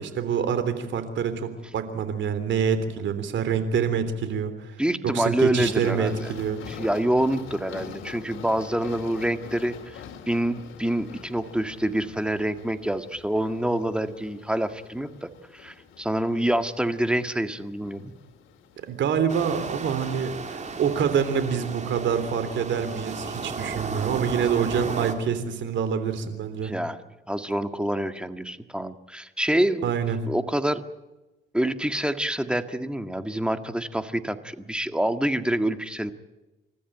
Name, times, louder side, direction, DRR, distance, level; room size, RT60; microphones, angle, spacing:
voice 1, 0.0-4.8 5.0-6.6 18.9-26.7 29.8-30.2, right 7 dB, 70° right, 11 dB, 3.5 m, -26 dB
voice 2, 4.8-6.3 6.7-18.1 26.6-27.0 27.3-29.9 30.3-30.8 31.5-36.1, right 1 dB, 5° right, 9 dB, 1.7 m, -27 dB
sound 1, 5.6-25.5, left 7 dB, 80° left, 3.0 m, -46 dB
sound 2, 19.3-25.1, right 4 dB, 35° right, 3.2 m, -34 dB
28.5 x 14.0 x 9.2 m, 1.1 s
cardioid pair, 90°, 20 cm